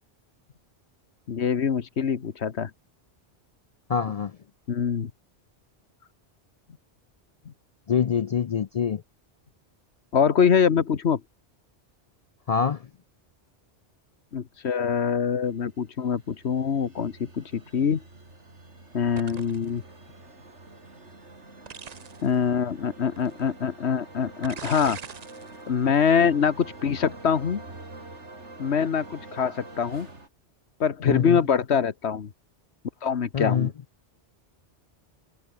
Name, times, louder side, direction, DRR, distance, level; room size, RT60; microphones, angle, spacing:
voice 1, 1.3-2.7 4.7-5.1 10.1-11.2 14.3-18.0 18.9-19.8 22.2-25.0 25.7-27.6 28.6-30.1 30.8-32.3 33.0-33.7, left 7 dB, 70° left, 1.5 m, -24 dB
voice 2, 3.9-4.4 7.9-9.0 12.5-12.9 31.1-31.4 33.3-33.7, left 7 dB, 55° left, 0.4 m, -25 dB
sound 1, 15.6-30.3, right 2 dB, 85° right, 4.6 m, -46 dB
sound 2, 19.2-19.7 21.7-22.3 23.2-23.3 24.4-25.5 25.9-26.2, right 6 dB, 40° right, 0.8 m, -40 dB
omnidirectional pair, 1.2 m